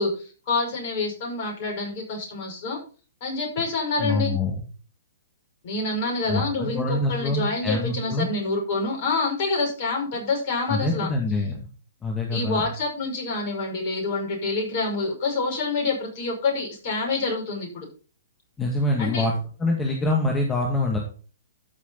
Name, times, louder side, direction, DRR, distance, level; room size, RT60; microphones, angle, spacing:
voice 1, 0.0-2.8 3.2-4.3 5.6-11.1 12.3-17.9 19.0-19.3, left 3 dB, 45° left, 0 dB, 5.8 m, -27 dB
voice 2, 4.0-4.5 6.3-8.3 10.7-11.6 12.0-12.6 18.6-19.3 19.6-21.0, left 2 dB, 15° left, 1 dB, 2.0 m, -25 dB
13.5 x 6.3 x 4.1 m, 0.37 s
figure-of-eight pair, 115°, 0 cm